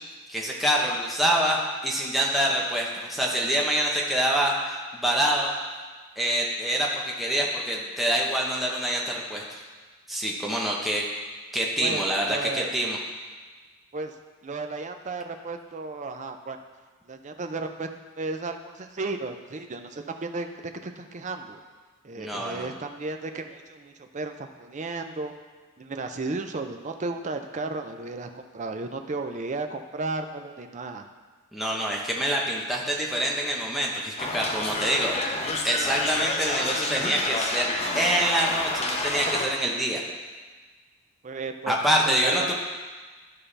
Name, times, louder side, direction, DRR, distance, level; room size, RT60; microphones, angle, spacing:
voice 1, 0.3-5.5 6.2-9.6 10.1-11.0 11.5-13.0 22.2-22.7 31.5-35.1 35.6-40.0 41.7-42.5, equal, ahead, -3 dB, 0.9 m, -26 dB
voice 2, 11.8-12.7 13.9-14.1 14.4-16.6 17.1-17.9 18.2-20.5 20.8-21.6 22.0-25.3 25.8-31.1 41.2-41.8 42.1-42.4, right 3 dB, 35° right, 6 dB, 0.5 m, -34 dB
sound 1, 34.2-39.5, left 2 dB, 30° left, 0.8 m, -29 dB
12.0 x 5.6 x 3.3 m, 1.4 s
head